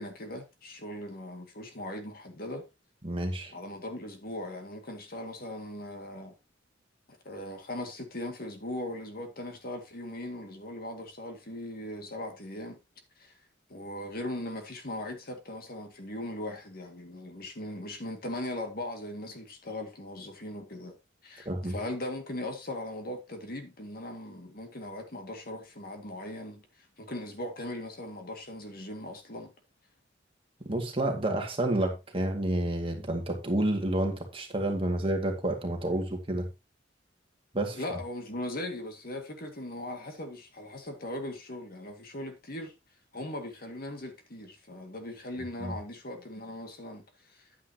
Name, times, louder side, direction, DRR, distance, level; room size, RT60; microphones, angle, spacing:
voice 1, 0.0-2.6 3.5-6.3 7.1-12.8 13.2-13.3 13.7-20.9 21.2-26.6 27.0-29.5 37.7-42.7 43.1-47.5, left 1 dB, 50° left, 2.1 m, -39 dB
voice 2, 3.0-3.5 21.5-21.8 30.6-36.5 37.5-37.8 45.6-45.8, right 1 dB, 30° right, 2.1 m, -29 dB
10.5 x 9.2 x 2.9 m
head